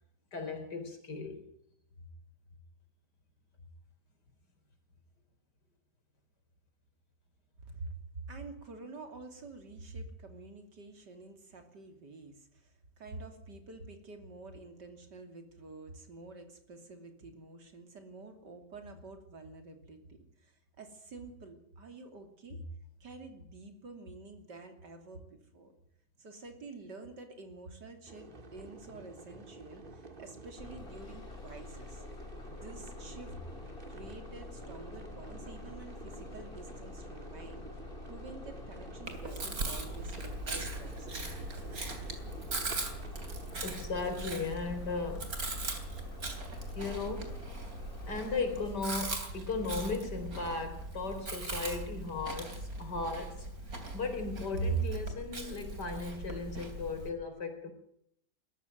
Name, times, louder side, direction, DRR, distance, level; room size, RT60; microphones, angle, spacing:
voice 1, 0.3-1.4 43.6-45.3 46.7-47.4 48.1-53.5 53.9-57.7, left 2 dB, 75° left, 6 dB, 4.6 m, -36 dB
voice 2, 7.7-8.0 8.3-22.6 23.0-25.7 26.2-32.0 32.5-33.4 33.9-37.7 38.1-41.5, right 3 dB, 80° right, 6 dB, 3.6 m, -49 dB
sound 1, 28.1-43.6, right 3 dB, 30° right, 1.9 m, -50 dB
Bus, 30.6-48.7, left 3 dB, 35° left, 2.0 m, -47 dB
Chewing mastication, 39.1-57.1, right 2 dB, 55° right, 3.8 m, -40 dB
20.5 x 14.0 x 9.3 m, 0.70 s
omnidirectional pair, 1.8 m